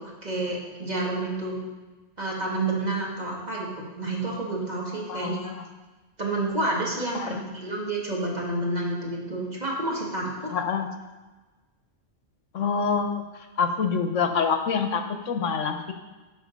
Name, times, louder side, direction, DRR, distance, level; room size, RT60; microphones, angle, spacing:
voice 1, 0.0-1.6 2.2-5.5 6.2-10.5, right 2 dB, 35° right, -3 dB, 1.9 m, -29 dB
voice 2, 5.1-5.6 7.1-7.4 10.5-10.9 12.5-13.2 13.6-15.9, left 5 dB, 80° left, 7 dB, 1.2 m, -26 dB
11.5 x 5.2 x 5.2 m, 1.2 s
omnidirectional pair, 1.3 m